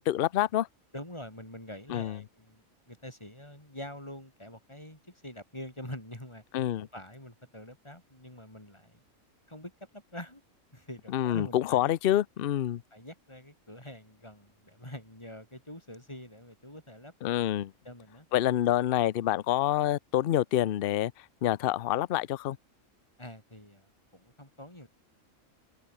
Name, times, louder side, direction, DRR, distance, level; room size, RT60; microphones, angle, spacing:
voice 1, 0.1-0.7 1.9-2.2 6.5-6.9 11.1-12.8 17.2-17.7 18.3-21.1 21.4-22.6, left 12 dB, 55° left, 0.7 m, -27 dB
voice 2, 0.9-6.4 6.8-9.0 9.5-10.4 10.7-12.0 12.9-17.1 17.8-18.3 23.2-24.9, left 1 dB, 20° left, 5.9 m, -45 dB
omnidirectional pair, 1.4 m